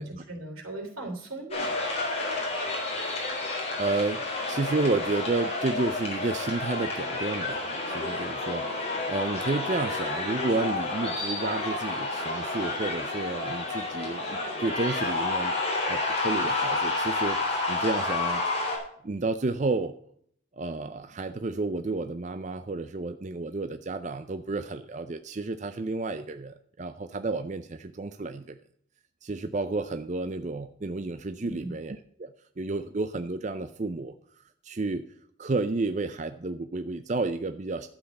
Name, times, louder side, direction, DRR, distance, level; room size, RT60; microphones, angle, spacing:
voice 1, 0.0-1.8 31.4-31.7, right 2 dB, 90° right, 3 dB, 3.3 m, -38 dB
sound 1, 1.5-18.8, left 2 dB, 30° left, 3.8 m, -30 dB
voice 2, 3.8-15.6 15.9-18.4 19.0-19.9 20.5-28.6 29.2-32.3 32.6-34.1 34.6-35.0 35.4-37.9, right 3 dB, 35° right, 9 dB, 0.5 m, -31 dB
12.0 x 8.1 x 5.4 m, 0.62 s
head